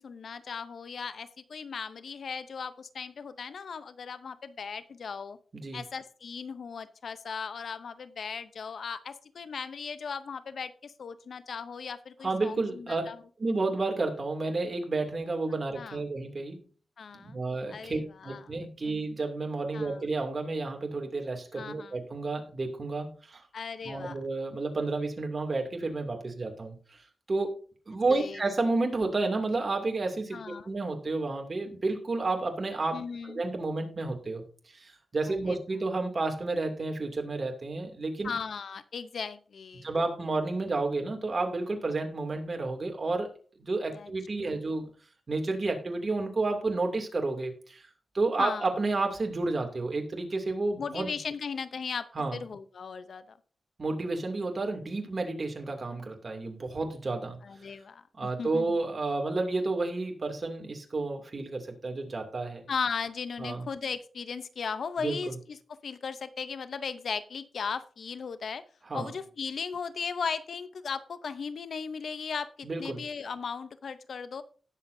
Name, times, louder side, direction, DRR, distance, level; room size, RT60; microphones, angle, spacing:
voice 1, 0.0-5.4 5.7-13.2 15.8-16.0 17.0-17.4 17.7-18.4 18.9-19.0 19.7-20.0 21.5-21.9 23.5-24.2 28.1-28.4 30.3-30.7 32.9-33.4 35.3-35.6 38.2-39.9 43.9-44.1 44.4-44.7 48.4-48.7 50.8-53.4 54.6-54.7 57.4-58.8 62.7-65.6 65.8-68.6 68.9-74.4, left 6 dB, 70° left, 13 dB, 0.7 m, -37 dB
voice 2, 12.2-13.1 13.4-16.6 17.2-23.4 23.8-27.0 27.3-27.6 27.9-34.4 34.7-38.3 39.8-43.3 43.6-44.9 45.3-47.9 48.1-51.1 52.1-52.4 53.8-57.4 58.1-62.6 63.4-63.6 65.0-65.3 68.9-69.1 72.6-73.0, right 3 dB, 40° right, 3 dB, 2.5 m, -31 dB
18.5 x 7.1 x 2.7 m, 0.40 s
cardioid pair, 80°, 0 cm